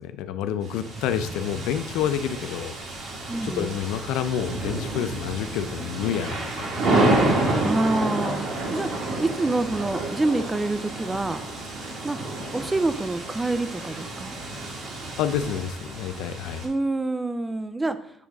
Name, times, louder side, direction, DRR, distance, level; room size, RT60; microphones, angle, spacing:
voice 1, 0.0-2.7 3.4-7.1 15.2-16.7, left 9 dB, 85° left, 11 dB, 0.4 m, -29 dB
sound 1, 0.6-16.7, right 2 dB, 65° right, 1.8 m, -29 dB
voice 2, 3.3-3.7 7.6-11.4 12.0-12.2 12.5-14.4 16.6-18.0, right 2 dB, 15° right, 12 dB, 0.4 m, -27 dB
8.2 x 3.6 x 3.5 m, 0.73 s
cardioid pair, 135°, 0 cm